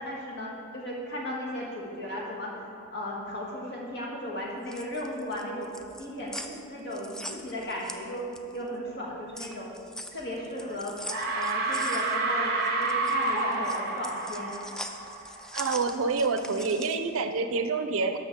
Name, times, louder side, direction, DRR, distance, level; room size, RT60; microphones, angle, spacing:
voice 1, 0.0-2.5 2.9-5.7 6.0-8.2 8.5-9.7 10.1-10.9 11.3-14.5, left 1 dB, 55° left, -3 dB, 1.8 m, -36 dB
sound 1, 4.5-8.6 9.0-17.1, equal, 5° left, 0.3 m, -42 dB
sound 2, 10.4-10.8 11.1-15.6, right 2 dB, 50° right, 0.9 m, -29 dB
voice 2, 15.5-18.2, right 4 dB, 70° right, 8 dB, 0.5 m, -27 dB
13.0 x 5.7 x 3.6 m, 2.5 s
head